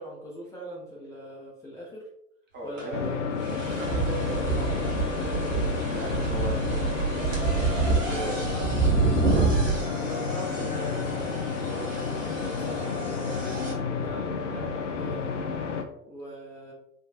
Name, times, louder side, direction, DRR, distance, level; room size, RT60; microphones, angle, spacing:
voice 1, 0.0-2.0 2.6-3.3 3.6-6.0 7.3-7.5 8.0-8.7 9.9-15.3 16.0-16.7, right 1 dB, 10° left, -6 dB, 0.5 m, -40 dB
voice 2, 2.5-3.1 3.8-4.3 5.9-7.3 7.6-8.4 9.3-9.9, right 1 dB, 25° right, 0 dB, 0.8 m, -39 dB
sound 1, 2.8-2.9 3.4-13.7, right 4 dB, 80° right, 1.0 m, -28 dB
sound 2, 2.9-15.8, left 5 dB, 75° left, 0.5 m, -31 dB
3.5 x 2.2 x 2.4 m, 0.76 s
figure-of-eight pair, 80°, 37 cm